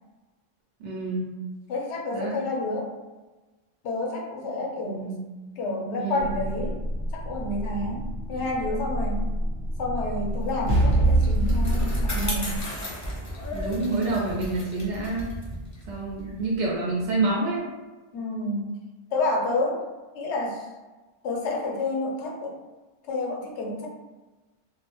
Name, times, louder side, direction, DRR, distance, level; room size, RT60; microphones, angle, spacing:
voice 1, 0.8-1.3 2.1-2.3 4.8-5.2 6.0-6.3 13.5-15.4 15.9-17.7, right 2 dB, 85° right, -4 dB, 1.0 m, -28 dB
voice 2, 1.7-2.9 3.8-5.2 5.6-6.8 7.1-9.3 9.8-12.6 18.1-18.7 19.1-19.9 20.1-20.7 21.2-22.5 23.1-23.9, left 2 dB, 85° left, 0 dB, 0.9 m, -29 dB
sound 1, 6.2-12.7, right 1 dB, 55° right, 0.8 m, -26 dB
Bicycle, 10.5-17.2, left 1 dB, 25° left, 0.4 m, -36 dB
2.4 x 2.1 x 2.9 m, 1.2 s
omnidirectional pair, 1.1 m